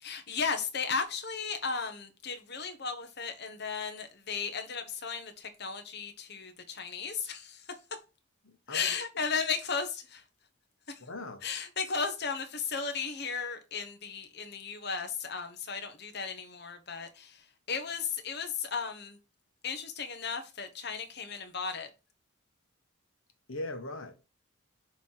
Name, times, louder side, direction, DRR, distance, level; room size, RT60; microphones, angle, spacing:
voice 1, 0.0-7.6 8.7-10.2 10.9-11.0 11.4-19.2 19.6-21.9, left 5 dB, 50° left, 1.1 m, -35 dB
voice 2, 8.4-9.0 11.0-11.4 23.5-24.2, left 2 dB, 70° left, 1.3 m, -40 dB
6.9 x 3.2 x 5.6 m
head